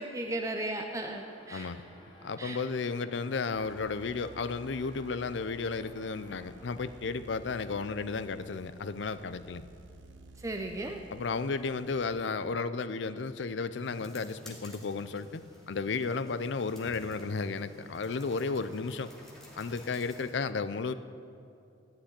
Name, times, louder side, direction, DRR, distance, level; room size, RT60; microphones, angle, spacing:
voice 1, 0.0-1.7 2.4-2.6 10.4-11.0, right 1 dB, 15° right, 3 dB, 0.6 m, -36 dB
sound 1, 0.9-7.5, equal, 25° left, 2.4 m, -56 dB
voice 2, 1.5-1.8 2.2-9.7 11.1-19.1 19.6-20.9, left 4 dB, 70° left, 14 dB, 0.5 m, -33 dB
sound 2, 3.5-12.2, right 2 dB, 80° right, 0.8 m, -54 dB
sound 3, 13.8-20.3, left 1 dB, 5° left, 2.5 m, -53 dB
14.5 x 6.2 x 9.8 m, 2.7 s
head